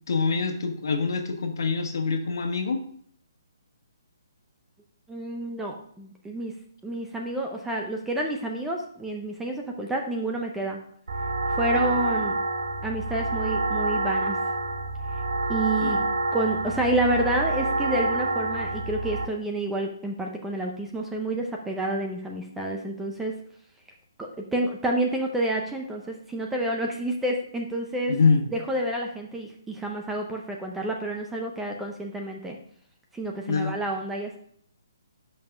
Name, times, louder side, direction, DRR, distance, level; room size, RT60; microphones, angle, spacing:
voice 1, 0.1-2.8 11.7-11.9 15.8-16.0 28.1-28.4 33.5-33.7, left 4 dB, 65° left, 5 dB, 1.3 m, -25 dB
voice 2, 5.1-6.5 6.8-10.8 11.6-12.4 12.8-14.4 15.5-16.0 16.3-23.3 24.2-28.1 28.5-32.6 33.1-34.4, right 1 dB, 5° right, 1 dB, 0.5 m, -29 dB
sound 1, 11.1-19.3, right 2 dB, 90° right, 1.0 m, -27 dB
5.5 x 5.5 x 6.0 m, 0.63 s
hypercardioid pair, 175°, 2 cm